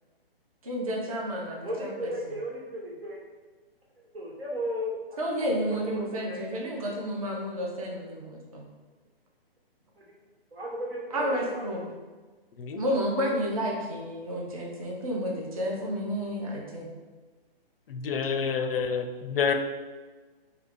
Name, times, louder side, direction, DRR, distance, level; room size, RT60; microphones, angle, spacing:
voice 1, 0.6-2.1 5.2-8.7 11.1-11.9 12.7-16.9, equal, 35° right, -2 dB, 0.5 m, -31 dB
voice 2, 1.6-3.2 4.1-5.2 5.7-6.4 10.0-10.1 10.5-11.6, equal, 80° right, -3 dB, 1.4 m, -35 dB
voice 3, 17.9-19.5, left 6 dB, 70° left, 7 dB, 0.4 m, -28 dB
3.2 x 2.3 x 3.7 m, 1.3 s
hypercardioid pair, 170°, 30 cm